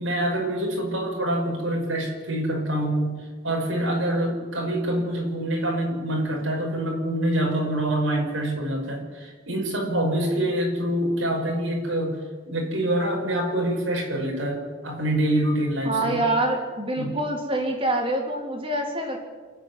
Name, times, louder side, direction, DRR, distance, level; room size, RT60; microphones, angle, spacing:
voice 1, 0.0-12.2 12.5-16.2 17.0-17.2, right 1 dB, 90° right, 0 dB, 5.8 m, -26 dB
voice 2, 15.8-19.2, right 1 dB, 30° right, 2 dB, 3.6 m, -25 dB
28.0 x 9.5 x 9.7 m, 1.5 s
head